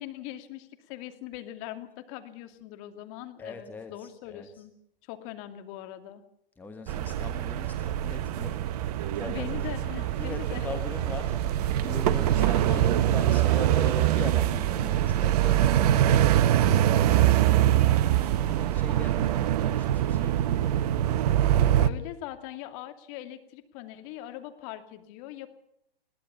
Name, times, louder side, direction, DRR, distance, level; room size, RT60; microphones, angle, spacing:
voice 1, 0.0-4.7 5.1-6.2 9.2-10.7 12.1-12.9 21.8-25.5, left 13 dB, 35° left, 8 dB, 2.5 m, -41 dB
voice 2, 3.4-4.6 6.6-9.7 10.2-11.4 11.8-16.3 16.8-21.0, left 3 dB, 5° left, 6 dB, 1.4 m, -41 dB
sound 1, 6.9-21.9, right 12 dB, 40° right, 1.0 m, -24 dB
21.5 x 17.5 x 7.0 m, 0.76 s
hypercardioid pair, 130°, 30 cm